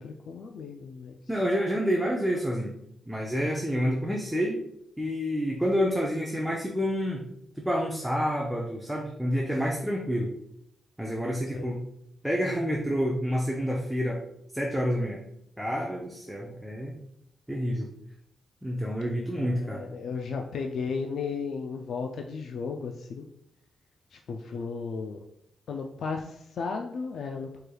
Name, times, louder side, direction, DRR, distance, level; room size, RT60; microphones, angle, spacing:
voice 1, 0.0-1.2 11.5-11.7 19.4-23.3 24.1-25.2 25.7-27.6, left 5 dB, 70° left, 3 dB, 0.3 m, -35 dB
voice 2, 1.3-2.7 3.1-4.6 5.0-7.2 7.5-10.3 11.0-11.8 12.2-14.2 14.5-15.2 15.6-16.9 17.5-17.9 18.6-19.9, equal, 5° right, -1 dB, 0.5 m, -28 dB
4.5 x 3.2 x 2.2 m, 0.75 s
cardioid pair, 95°, 0 cm